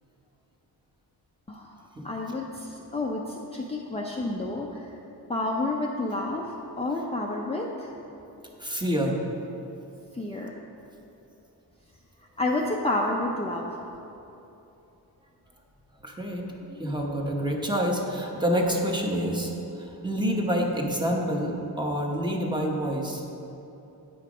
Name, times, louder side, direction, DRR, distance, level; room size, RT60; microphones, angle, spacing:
voice 1, 2.0-4.9 5.3-6.5 6.8-7.9 10.1-10.5 12.4-13.9 16.7-16.9, left 2 dB, 15° left, -2 dB, 0.5 m, -30 dB
voice 2, 8.6-9.2 16.0-16.5 16.8-19.5 19.8-23.2, equal, 10° right, 0 dB, 1.0 m, -27 dB
9.3 x 5.7 x 4.9 m, 2.9 s
wide cardioid pair, 125°, 38 cm